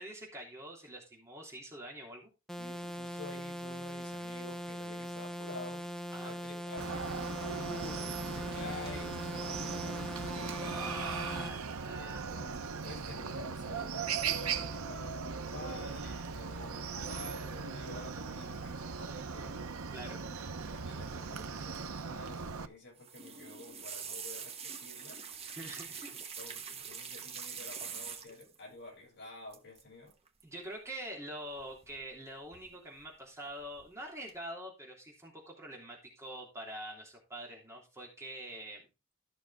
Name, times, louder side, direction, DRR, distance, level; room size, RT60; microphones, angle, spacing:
voice 1, 0.0-2.3 6.1-6.3 10.5-12.3 19.9-20.2 25.6-26.1 30.4-38.8, right 1 dB, 15° right, 3.2 m, -45 dB
sound 1, 2.5-11.5, equal, ahead, 0.6 m, -41 dB
voice 2, 2.6-5.8 6.2-10.2 11.9-19.7 20.2-20.4 20.6-25.2 25.8-30.1, left 2 dB, 55° left, 6.7 m, -49 dB
Chicken rooster, 6.8-22.7, right 5 dB, 90° right, 0.8 m, -39 dB
sound 2, 23.0-28.5 29.5-29.8 30.1-30.4 31.6-32.2 32.5-33.1 33.5-33.9 34.3-34.4, right 6 dB, 30° right, 1.3 m, -44 dB
14.0 x 6.2 x 3.6 m
head